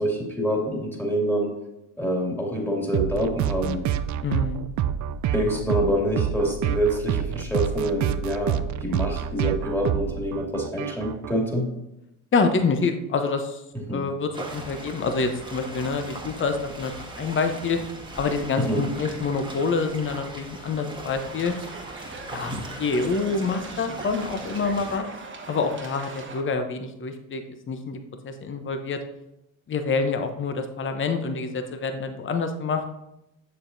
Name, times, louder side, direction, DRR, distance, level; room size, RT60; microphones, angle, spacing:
voice 1, 0.0-1.5 2.0-3.8 5.3-11.7 13.9-14.0 18.6-18.8, equal, 5° left, -2 dB, 2.4 m, -26 dB
sound 1, 2.9-11.3, right 10 dB, 45° right, 0.5 m, -28 dB
voice 2, 4.2-4.7 12.3-13.6 13.9-16.9 17.2-17.8 18.2-21.5 22.3-25.0 25.5-28.0 28.2-29.0 29.7-32.8, left 4 dB, 30° left, 7 dB, 0.8 m, -26 dB
sound 2, 14.3-25.0, right 1 dB, 10° right, 1.4 m, -39 dB
sound 3, 21.1-26.4, right 3 dB, 30° right, 1.1 m, -41 dB
7.3 x 6.8 x 2.7 m, 0.88 s
supercardioid pair, 75°, 41 cm